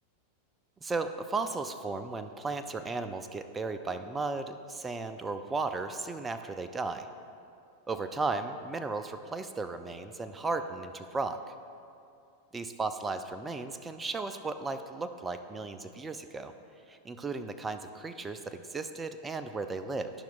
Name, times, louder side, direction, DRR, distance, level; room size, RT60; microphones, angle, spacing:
voice 1, 0.8-7.1 7.9-11.4 12.5-16.5 16.9-20.1, right 3 dB, 15° right, 9 dB, 0.4 m, -35 dB
12.0 x 5.7 x 2.4 m, 2.5 s
figure-of-eight pair, 90°, 0 cm